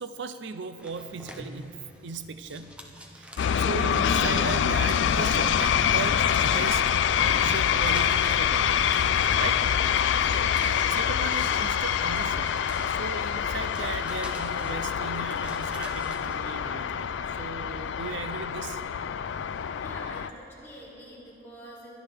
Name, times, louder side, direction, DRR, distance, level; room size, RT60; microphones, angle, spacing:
voice 1, 0.0-2.8 3.1-8.7 9.4-9.8 10.5-18.8, right 4 dB, 70° right, 10 dB, 0.5 m, -37 dB
sound 1, 0.8-16.5, equal, 5° right, 0.7 m, -48 dB
voice 2, 3.3-3.7 10.0-10.8 19.7-22.0, equal, 15° left, -8 dB, 3.1 m, -47 dB
sound 2, 3.4-20.3, left 8 dB, 75° left, 0.3 m, -25 dB
23.0 x 11.0 x 3.5 m, 2.9 s
head